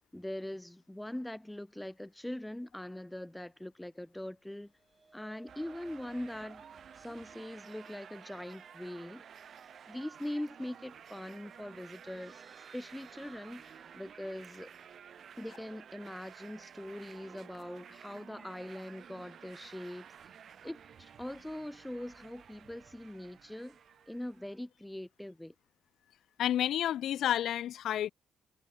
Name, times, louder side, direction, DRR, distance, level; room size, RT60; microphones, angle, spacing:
voice 1, 0.1-4.7 5.1-6.6 7.0-9.2 9.9-12.4 12.7-14.7 15.4-20.1 20.6-23.8 24.1-25.5, left 1 dB, 5° left, 0.5 m, -42 dB
sound 1, 4.4-18.7 19.0-19.3 19.6-19.7, right 3 dB, 25° right, 3.6 m, -63 dB
sound 2, 5.5-24.6, right 8 dB, 60° right, 2.4 m, -53 dB
sound 3, 8.3-9.2 9.6-12.9 13.2-13.3 13.7-13.8 14.1-14.8 15.2-16.3 16.5-16.6 16.9-17.1 17.5-18.4, left 6 dB, 50° left, 7.9 m, -69 dB
voice 2, 26.4-28.1, left 11 dB, 75° left, 0.5 m, -30 dB
cardioid pair, 90°, 0 cm